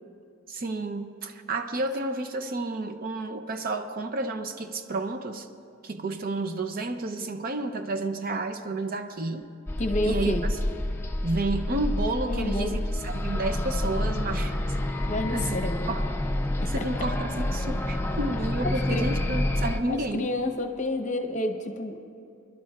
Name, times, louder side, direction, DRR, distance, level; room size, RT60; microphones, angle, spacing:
voice 1, 0.5-5.5 5.8-9.5 10.0-10.5 11.2-14.5 15.3-15.6 15.9-16.1 16.7-20.3, right 2 dB, 45° right, 7 dB, 0.5 m, -31 dB
sound 1, 9.7-19.8, left 1 dB, 10° left, 0.5 m, -28 dB
voice 2, 9.8-10.4 12.3-12.8 15.1-15.9 16.8-16.9 18.6-19.0 19.9-22.0, left 1 dB, 35° left, 6 dB, 0.8 m, -29 dB
26.0 x 11.5 x 2.4 m, 2.4 s
head